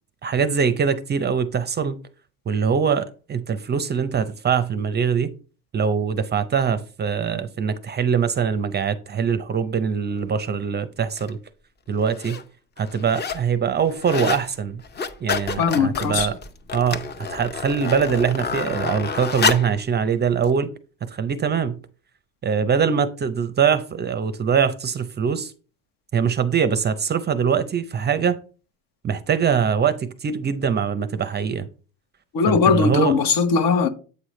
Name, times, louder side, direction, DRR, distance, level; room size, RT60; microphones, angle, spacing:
voice 1, 0.2-2.0 2.5-5.3 5.7-11.4 11.9-12.4 12.8-14.8 15.2-16.4 16.7-20.7 21.0-21.8 22.4-25.5 26.1-28.4 29.0-31.7 32.5-33.2, right 6 dB, 25° right, 0.5 m, -23 dB
sound 1, 11.2-11.3 12.0-12.4 12.8-13.5 13.8-14.5 14.8-19.8 20.4-20.5, left 5 dB, 25° left, 0.7 m, -28 dB
voice 2, 15.6-16.3 32.3-33.9, left 5 dB, 60° left, 1.1 m, -19 dB
8.2 x 4.8 x 3.1 m
cardioid pair, 120°, 38 cm